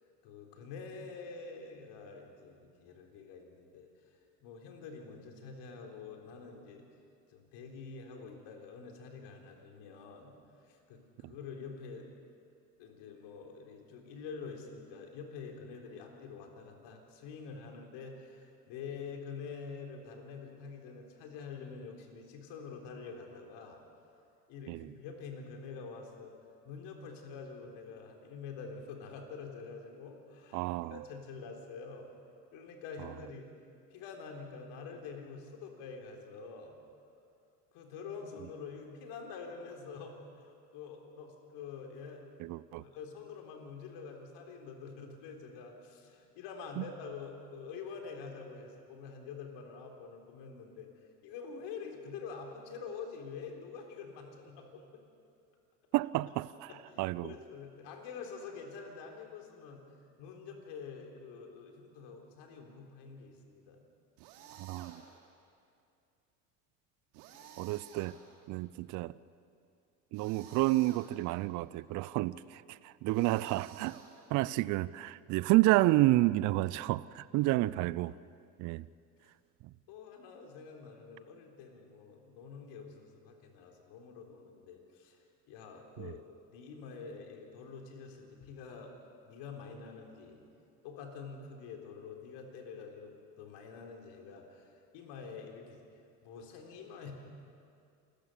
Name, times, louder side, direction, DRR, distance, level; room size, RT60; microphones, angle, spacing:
voice 1, 0.2-3.9 4.4-6.8 7.3-10.3 10.6-12.1 12.8-23.8 24.5-26.3 26.6-30.7 30.9-32.1 32.5-33.4 33.9-36.8 37.7-42.3 42.8-50.9 51.2-55.0 56.7-63.8 74.4-74.5 77.3-77.5 79.9-86.2 86.5-89.0 89.2-90.4 90.8-95.8 96.2-97.1, left 5 dB, 55° left, 2 dB, 3.8 m, -46 dB
voice 2, 30.5-31.0 42.4-42.8 46.8-46.9 55.9-56.7 57.0-57.3 64.6-65.0 67.6-68.2 68.5-69.1 70.1-74.0 74.3-78.1 78.6-78.9 86.0-86.1, right 18 dB, 40° right, 19 dB, 0.5 m, -30 dB
sound 1, 64.2-65.3 67.1-68.6 70.1-71.4 73.1-74.5, right 8 dB, 65° right, 2.9 m, -54 dB
28.0 x 14.5 x 6.8 m, 2.4 s
hypercardioid pair, 75°, 48 cm